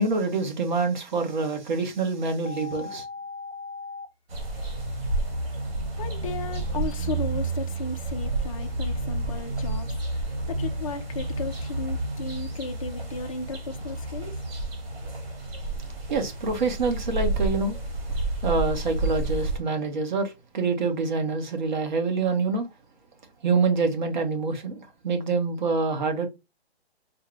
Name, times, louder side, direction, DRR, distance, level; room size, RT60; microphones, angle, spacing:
voice 1, 0.0-3.0 16.1-17.7 18.4-22.7 23.4-26.3, right 4 dB, 45° right, 1.1 m, -26 dB
sound 1, 2.4-4.1, left 4 dB, 80° left, 0.7 m, -38 dB
sound 2, 4.3-19.6, right 2 dB, 65° right, 1.7 m, -30 dB
voice 2, 6.0-9.9 10.1-14.4, left 4 dB, 35° left, 0.4 m, -35 dB
4.3 x 2.6 x 3.1 m
hypercardioid pair, 160°, 32 cm